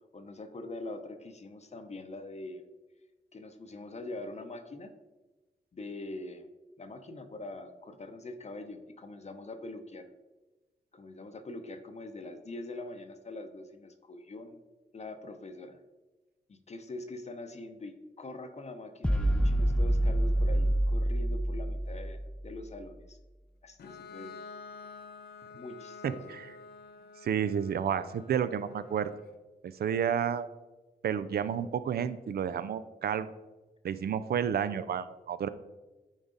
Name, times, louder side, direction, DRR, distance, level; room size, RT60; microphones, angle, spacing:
voice 1, 0.1-2.6 3.3-4.9 5.7-6.4 6.8-10.1 10.9-14.6 14.9-15.8 16.5-23.2 23.6-24.4 25.6-26.3, left 2 dB, 45° left, 7 dB, 0.7 m, -43 dB
sound 1, 19.0-22.5, right 1 dB, 5° left, 0.5 m, -27 dB
Bowed string instrument, 23.8-29.4, left 5 dB, 85° left, 0.6 m, -49 dB
voice 2, 26.0-26.5 27.2-29.1 29.6-30.5 31.0-33.3 33.8-35.5, right 8 dB, 80° right, 14 dB, 0.4 m, -31 dB
9.2 x 4.1 x 3.8 m, 1.1 s
cardioid pair, 70°, 16 cm